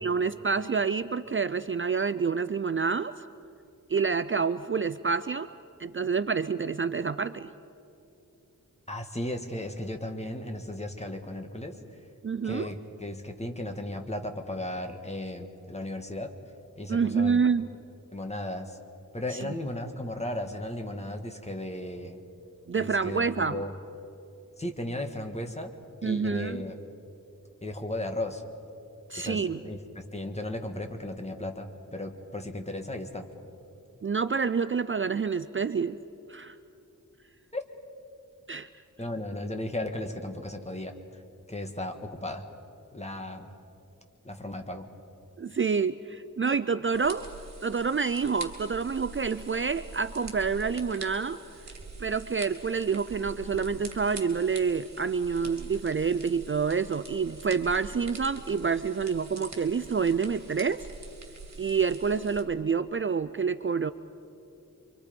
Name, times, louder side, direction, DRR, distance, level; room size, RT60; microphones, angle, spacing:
voice 1, 0.0-3.2 3.9-5.5 5.8-7.5 12.2-12.7 16.9-17.7 19.3-19.5 22.7-23.6 26.0-26.6 29.1-29.6 34.0-36.0 36.3-36.6 38.5-38.7 45.4-47.3 47.6-51.4 52.0-60.9 61.6-63.9, right 5 dB, 40° right, 13 dB, 0.5 m, -28 dB
voice 2, 8.9-11.8 12.4-16.3 16.7-17.4 18.1-18.8 19.1-22.2 22.7-23.7 24.6-25.7 26.0-26.8 27.6-28.4 29.2-33.3 37.5-37.6 39.0-41.2 41.5-42.5 42.9-43.5 44.2-44.9, left 1 dB, 20° left, 5 dB, 1.6 m, -35 dB
sound 1, 46.9-62.4, right 3 dB, 55° right, 2.8 m, -45 dB
28.5 x 24.0 x 5.2 m, 2.8 s
wide cardioid pair, 105°, 33 cm